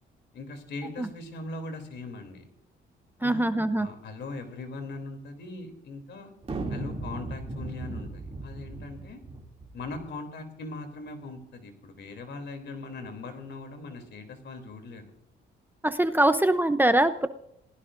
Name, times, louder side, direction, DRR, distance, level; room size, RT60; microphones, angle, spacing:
voice 1, 0.3-2.5 3.2-3.5 3.8-6.3 6.7-9.2 9.7-15.0, left 2 dB, 65° left, 6 dB, 3.2 m, -40 dB
voice 2, 3.2-3.9 15.8-17.3, right 1 dB, 10° right, 10 dB, 0.7 m, -23 dB
sound 1, 6.4-10.1, right 2 dB, 30° right, 2.8 m, -36 dB
26.5 x 16.5 x 2.6 m, 0.78 s
cardioid pair, 90°, 20 cm